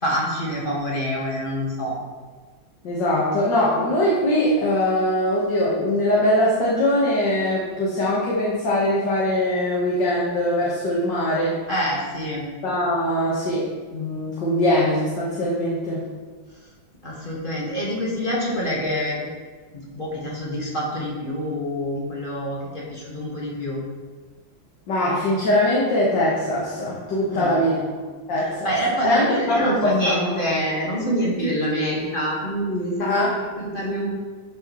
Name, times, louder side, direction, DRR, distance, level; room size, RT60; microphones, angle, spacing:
voice 1, 0.0-1.9 11.7-12.5 17.0-19.2 19.7-23.8 27.3-27.7 28.6-34.1, equal, 25° left, -5 dB, 1.9 m, -26 dB
voice 2, 2.8-11.6 12.6-13.6 13.9-16.0 24.9-27.9 28.3-28.7 29.0-30.2 31.4-31.5 33.0-33.3, left 1 dB, 60° left, -6 dB, 2.1 m, -22 dB
12.0 x 6.4 x 3.2 m, 1.4 s
omnidirectional pair, 2.2 m